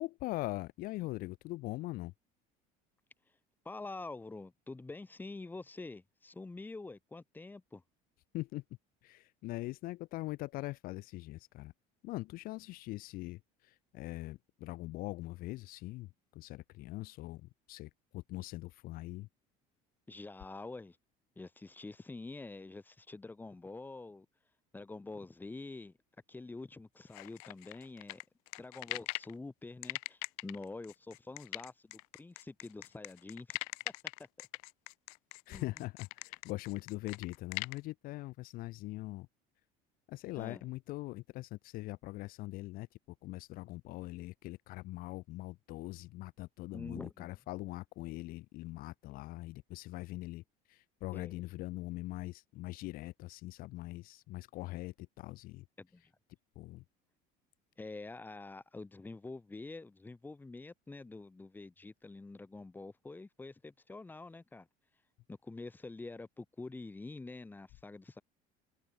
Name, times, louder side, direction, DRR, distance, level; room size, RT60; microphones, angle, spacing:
voice 1, 0.0-2.1 8.3-8.6 9.0-11.7 12.0-19.3 35.5-39.3 40.1-55.6 56.6-56.8, left 19 dB, 55° left, 0.6 m, -42 dB
voice 2, 3.6-7.8 20.1-21.0 21.4-24.3 24.7-25.9 26.3-28.2 28.6-33.6 35.5-35.7 40.4-40.6 46.7-47.3 51.1-51.4 55.8-56.0 57.8-64.7 65.3-68.2, left 3 dB, 10° left, 2.2 m, -46 dB
sound 1, 27.1-29.3 29.8-37.8, left 36 dB, 90° left, 1.9 m, -41 dB
cardioid pair, 145°, 18 cm